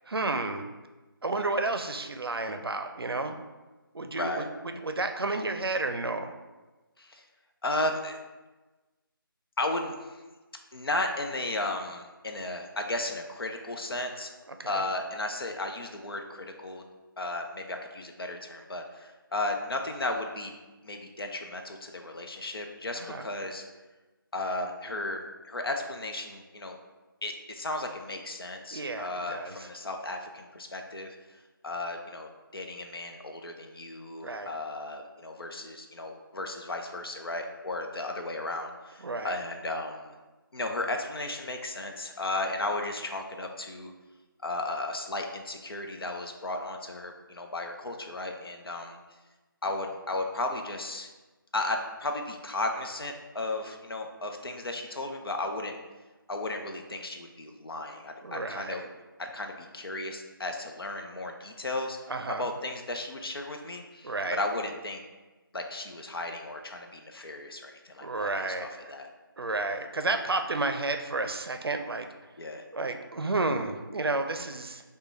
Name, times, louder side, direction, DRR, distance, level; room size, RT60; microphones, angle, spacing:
voice 1, 0.1-0.7 1.2-3.3 3.9-4.4 4.8-6.3 14.6-14.8 23.0-23.2 28.7-29.7 34.2-34.5 39.0-39.4 58.2-58.8 62.1-62.5 64.0-64.4 68.0-68.9 69.4-72.1 72.7-74.8, right 3 dB, 90° right, 7 dB, 0.5 m, -31 dB
voice 2, 4.1-4.5 7.0-7.2 7.6-8.2 9.6-10.2 10.7-14.3 14.7-16.8 17.2-20.5 20.8-23.6 24.3-25.2 25.5-26.8 27.2-31.1 31.6-40.1 40.5-43.9 44.4-49.0 49.6-51.1 51.5-55.8 56.3-58.8 59.2-62.0 62.4-65.0 65.5-69.1 72.4-72.6, left 2 dB, 80° left, 3 dB, 0.6 m, -34 dB
5.0 x 2.2 x 3.2 m, 1.2 s
figure-of-eight pair, 170°, 12 cm